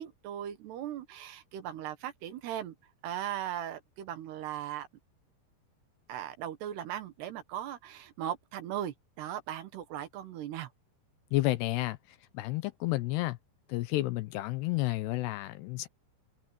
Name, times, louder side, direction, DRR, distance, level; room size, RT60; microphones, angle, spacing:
voice 1, 0.0-2.7 3.0-4.9 6.1-10.7, right 11 dB, 70° right, 3.4 m, -38 dB
voice 2, 11.3-12.0 12.3-13.4 13.7-15.9, left 18 dB, 80° left, 2.6 m, -31 dB
omnidirectional pair, 5.2 m